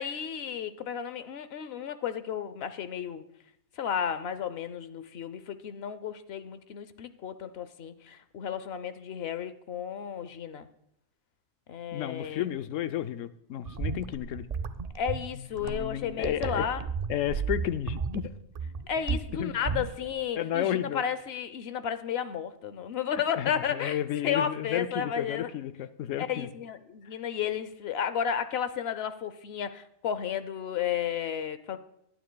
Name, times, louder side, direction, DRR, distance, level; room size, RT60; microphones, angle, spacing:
voice 1, 0.0-3.2 3.8-10.7 11.7-12.5 14.9-16.8 18.9-25.5 26.2-31.8, left 8 dB, 60° left, 12 dB, 0.8 m, -33 dB
voice 2, 11.9-14.5 15.6-16.6 17.1-18.3 19.4-19.5 20.4-21.0 23.4-26.5, left 11 dB, 85° left, 12 dB, 0.9 m, -32 dB
sound 1, 13.7-20.2, right 5 dB, 60° right, 0.4 m, -34 dB
21.0 x 9.2 x 2.3 m, 0.75 s
omnidirectional pair, 1.3 m